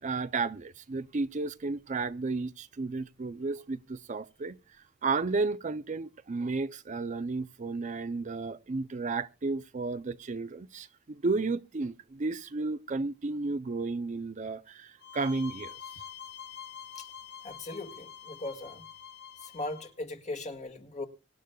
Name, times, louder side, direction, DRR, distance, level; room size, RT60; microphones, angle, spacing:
voice 1, 0.0-4.6 5.0-15.8, right 3 dB, 40° right, 0.5 m, -33 dB
sound 1, 15.0-19.9, left 9 dB, 60° left, 1.6 m, -46 dB
voice 2, 17.4-18.9 19.4-21.0, left 2 dB, 35° left, 1.9 m, -39 dB
24.5 x 10.5 x 2.3 m
head